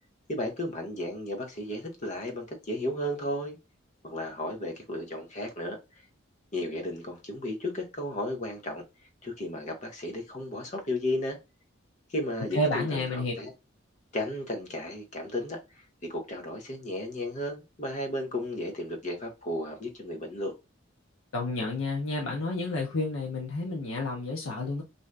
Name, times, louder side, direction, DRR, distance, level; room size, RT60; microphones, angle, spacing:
voice 1, 0.3-3.6 4.0-5.8 6.5-8.8 9.2-11.4 12.1-13.5 14.1-20.5, left 1 dB, 35° left, 0.7 m, -34 dB
voice 2, 12.5-13.3 21.3-24.8, left 2 dB, 75° left, 0.6 m, -30 dB
2.6 x 2.4 x 3.2 m
head